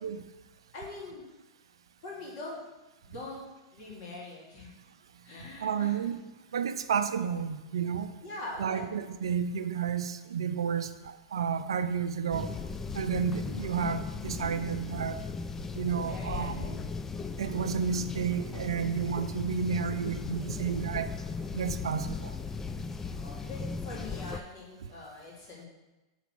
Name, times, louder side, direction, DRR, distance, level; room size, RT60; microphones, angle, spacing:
voice 1, 0.7-1.2 2.0-2.6 3.0-3.4 3.7-4.7 5.2-6.1 8.2-8.8 15.9-16.9 17.4-17.8 23.1-25.7, left 2 dB, 50° left, -5 dB, 2.7 m, -43 dB
voice 2, 5.6-6.2 6.5-8.1 8.6-12.5 12.9-15.2 15.7-16.7 17.4-21.1 21.5-22.4, right 7 dB, 80° right, 10 dB, 0.5 m, -31 dB
sound 1, 12.3-24.4, left 4 dB, 15° left, 0.4 m, -37 dB
6.9 x 4.1 x 6.1 m, 1.1 s
hypercardioid pair, 115°, 3 cm